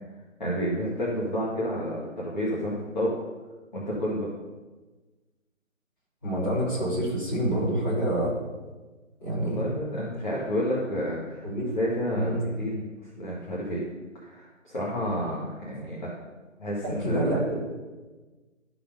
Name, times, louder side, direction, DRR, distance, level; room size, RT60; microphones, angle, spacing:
voice 1, 0.4-3.1 3.7-4.3 9.4-11.5 11.7-13.8 14.2-16.1 16.6-17.4, equal, 35° left, -6 dB, 1.6 m, -30 dB
voice 2, 6.2-8.3 9.2-9.7 11.4-11.7 12.1-12.4 16.8-17.6, right 1 dB, 15° left, -11 dB, 3.3 m, -27 dB
12.0 x 4.2 x 5.3 m, 1.2 s
figure-of-eight pair, 165°, 40 cm